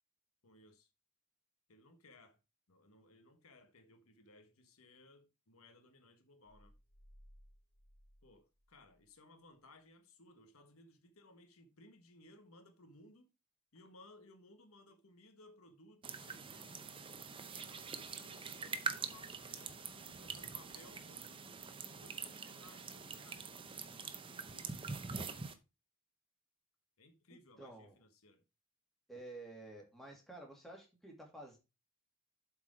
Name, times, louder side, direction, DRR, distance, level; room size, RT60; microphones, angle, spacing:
voice 1, 0.4-0.9 1.7-2.4 2.7-6.7 8.2-13.3 13.7-17.1 17.6-21.3 21.8-23.5 24.3-24.8 27.0-28.4, left 2 dB, 75° left, 1.3 m, -62 dB
sound 1, 6.4-9.2, equal, 35° left, 3.8 m, -63 dB
sound 2, 16.0-25.5, right 5 dB, 25° right, 0.7 m, -44 dB
voice 2, 27.3-28.0 29.1-31.6, right 2 dB, ahead, 2.4 m, -51 dB
7.7 x 4.7 x 4.9 m
head